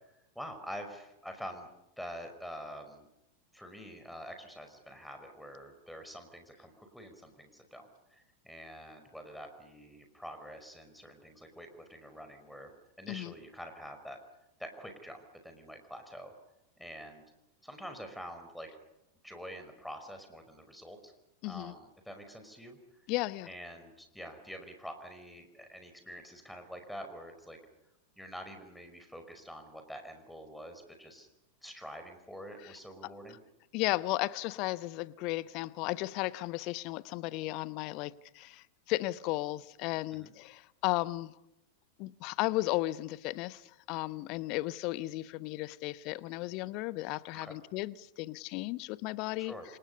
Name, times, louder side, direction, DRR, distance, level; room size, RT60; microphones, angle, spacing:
voice 1, 0.1-1.7 2.0-3.1 3.5-12.7 13.0-14.2 14.6-16.3 16.8-17.2 17.6-18.7 19.2-21.1 21.4-22.8 23.4-27.6 28.2-31.3 31.6-33.4 40.1-40.3 47.3-47.6 49.4-49.7, equal, ahead, 5.1 m, -46 dB
voice 2, 21.4-21.7 23.1-23.5 33.7-41.3 42.0-49.5, left 19 dB, 40° left, 1.0 m, -35 dB
29.5 x 27.5 x 5.5 m
figure-of-eight pair, 90°, 0 cm